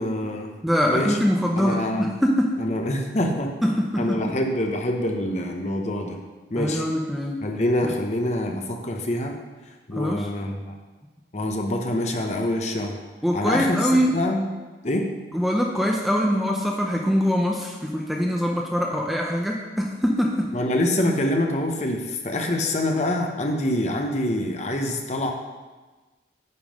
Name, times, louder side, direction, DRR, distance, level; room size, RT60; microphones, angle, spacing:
voice 1, 0.0-0.5 0.8-1.2 1.6-2.1 2.6-3.6 4.0-6.2 6.5-6.8 7.4-9.4 9.9-10.7 11.3-13.0 13.3-14.4 14.8-15.1 20.5-25.3, left 1 dB, 40° left, 3 dB, 0.8 m, -25 dB
voice 2, 0.6-2.6 3.6-4.4 6.6-7.4 7.8-7.9 10.0-10.3 13.2-14.2 15.3-20.5, equal, ahead, 0 dB, 0.5 m, -23 dB
9.5 x 3.7 x 5.1 m, 1.2 s
head